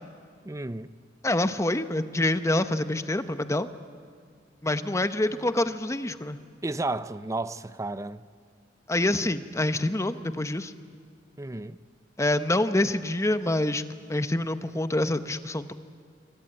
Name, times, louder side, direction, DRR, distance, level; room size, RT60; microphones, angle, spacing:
voice 1, 0.4-0.9 6.6-8.2 11.4-11.8, right 2 dB, 15° right, 0.6 m, -32 dB
voice 2, 1.2-3.7 4.6-6.4 8.9-10.7 12.2-13.8 14.1-15.7, left 1 dB, 15° left, 0.9 m, -26 dB
26.5 x 25.0 x 8.9 m
head